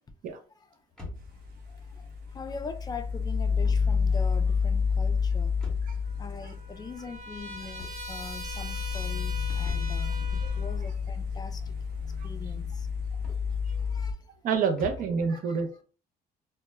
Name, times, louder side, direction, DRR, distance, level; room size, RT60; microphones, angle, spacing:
sound 1, 0.9-15.3, left 3 dB, 5° left, 0.8 m, -49 dB
sound 2, 1.2-14.1, left 5 dB, 75° right, 0.9 m, -30 dB
voice 1, 2.3-5.5 6.2-10.1 10.6-11.7 12.2-12.9 13.9-14.2 15.3-15.6, left 4 dB, 25° left, 0.4 m, -42 dB
Trumpet, 6.0-10.8, right 2 dB, 40° right, 0.9 m, -42 dB
voice 2, 14.4-15.8, right 5 dB, 55° right, 0.5 m, -28 dB
2.1 x 2.0 x 3.3 m
cardioid pair, 110°, 17 cm